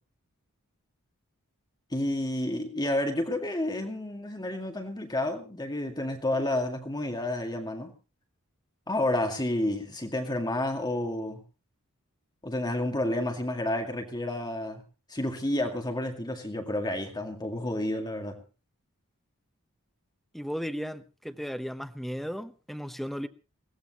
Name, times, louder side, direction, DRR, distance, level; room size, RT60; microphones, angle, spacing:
voice 1, 1.9-7.9 8.9-11.4 12.4-14.8 15.1-18.4, left 1 dB, 20° left, 2.2 m, -30 dB
voice 2, 20.3-23.3, equal, ahead, 0.9 m, -35 dB
21.5 x 17.0 x 3.0 m
head